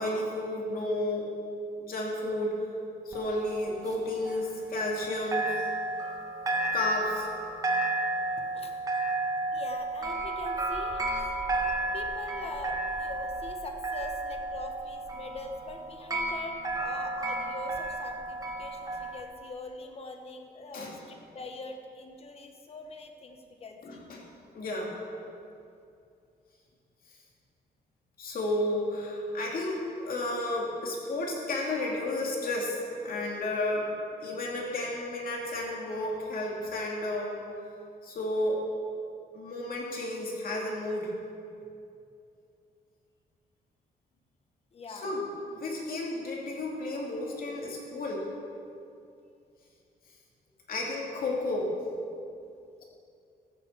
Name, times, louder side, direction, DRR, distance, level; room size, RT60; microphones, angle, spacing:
voice 1, 0.0-1.3 1.8-2.7 3.1-5.6 6.7-7.3 20.7-20.9 23.8-24.2 24.5-24.9 28.2-33.9 34.2-37.4 38.0-38.6 39.3-41.1 44.9-48.3 50.7-51.7, left 1 dB, 60° left, -2 dB, 2.6 m, -32 dB
sound 1, 3.1-5.1 5.3-19.2, right 2 dB, 20° right, 1.3 m, -32 dB
voice 2, 8.4-8.7 9.5-11.3 11.9-21.0 21.3-24.0 44.7-45.1, left 3 dB, 40° left, 4 dB, 1.1 m, -43 dB
14.0 x 6.8 x 7.6 m, 2.6 s
wide cardioid pair, 160°, 16 cm